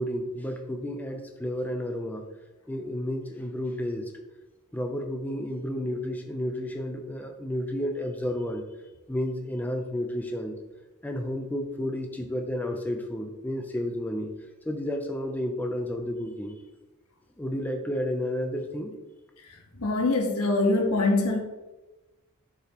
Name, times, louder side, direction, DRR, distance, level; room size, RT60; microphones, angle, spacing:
voice 1, 0.0-2.2 2.7-4.1 4.7-8.7 9.1-10.6 11.0-14.3 14.7-16.6 17.4-19.0, left 1 dB, 10° left, 0.6 m, -31 dB
voice 2, 19.8-21.4, left 2 dB, 85° left, 1.4 m, -23 dB
8.4 x 6.2 x 3.0 m
head